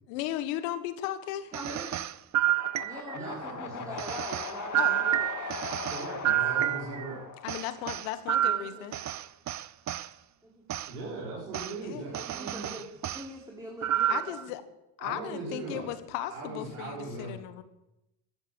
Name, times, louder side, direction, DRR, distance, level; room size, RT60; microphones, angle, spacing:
voice 1, 0.1-1.5 4.8-5.0 7.4-9.0 11.8-12.1 14.1-14.6 15.0-17.6, left 12 dB, 75° left, 12 dB, 1.5 m, -36 dB
voice 2, 1.5-1.9 2.8-5.3 8.4-8.9 10.4-10.6 12.1-12.9 13.1-14.5, equal, 5° right, -2 dB, 4.6 m, -43 dB
sound 1, 1.5-3.3 4.0-7.1 7.5-10.1 10.7-10.9 11.5-11.7 12.1-13.3 13.8-14.4, right 12 dB, 40° right, 0.8 m, -29 dB
sound 2, 2.3-8.5, left 5 dB, 40° left, 2.5 m, -40 dB
voice 3, 3.1-3.9 5.9-7.2 10.9-12.7 15.0-15.9 16.3-17.3, right 3 dB, 90° right, -7 dB, 5.2 m, -39 dB
14.0 x 13.0 x 7.0 m, 0.91 s
hypercardioid pair, 60°, 45 cm